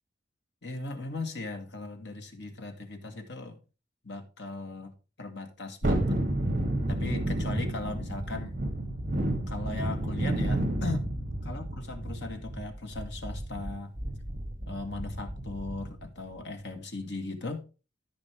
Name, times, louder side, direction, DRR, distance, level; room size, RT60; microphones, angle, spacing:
voice 1, 0.6-3.6 4.0-4.9 5.2-6.2 6.9-8.6 9.5-11.0 11.4-13.9 14.7-17.7, left 3 dB, 75° left, 1.7 m, -38 dB
Thunderstorm, 5.8-16.1 16.4-16.5, right 1 dB, 45° right, 2.3 m, -31 dB
13.5 x 5.3 x 3.5 m
head